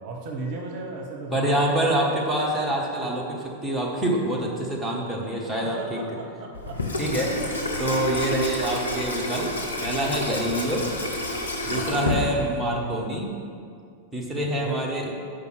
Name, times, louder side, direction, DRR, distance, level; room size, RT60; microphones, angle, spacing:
voice 1, 0.0-2.0 5.6-7.0 8.1-8.3 11.8-12.2 14.5-14.8, right 3 dB, 45° right, 1 dB, 0.8 m, -36 dB
voice 2, 1.3-6.0 7.0-7.3 7.8-9.5 9.8-10.9 11.7-13.3 14.1-15.1, right 1 dB, ahead, -4 dB, 1.2 m, -26 dB
Water tap faucet / Sink (filling or washing), 6.5-12.8, left 1 dB, 75° left, 0.8 m, -29 dB
5.6 x 4.8 x 6.0 m, 2.3 s
figure-of-eight pair, 90°, 0 cm